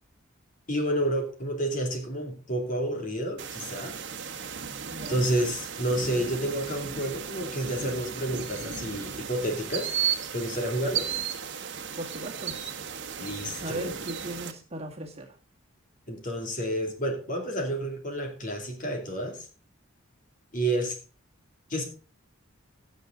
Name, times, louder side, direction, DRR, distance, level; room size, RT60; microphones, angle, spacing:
voice 1, 0.7-4.0 5.1-9.9 10.3-11.1 13.2-13.9 16.1-19.5 20.5-21.0 21.7-21.8, right 1 dB, 40° left, 3 dB, 2.8 m, -30 dB
sound 1, 3.4-14.5, right 7 dB, 60° right, 1.3 m, -35 dB
voice 2, 4.8-5.2 12.0-12.6 13.6-15.4, right 1 dB, 30° right, 2 dB, 2.1 m, -37 dB
16.5 x 6.6 x 3.8 m, 0.36 s
head